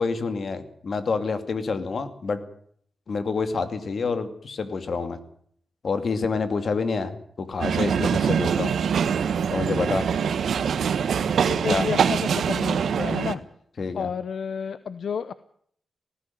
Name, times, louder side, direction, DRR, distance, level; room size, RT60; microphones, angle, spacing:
voice 1, 0.0-2.4 3.1-5.2 5.8-8.7 9.5-10.1 11.7-11.9 13.8-14.1, left 4 dB, 60° left, 10 dB, 2.4 m, -27 dB
sound 1, 7.6-13.3, right 7 dB, 85° right, 1.3 m, -24 dB
voice 2, 11.5-13.4 13.9-15.3, left 6 dB, 75° left, 14 dB, 0.8 m, -31 dB
19.0 x 15.5 x 9.3 m, 0.64 s
wide cardioid pair, 100°, 0 cm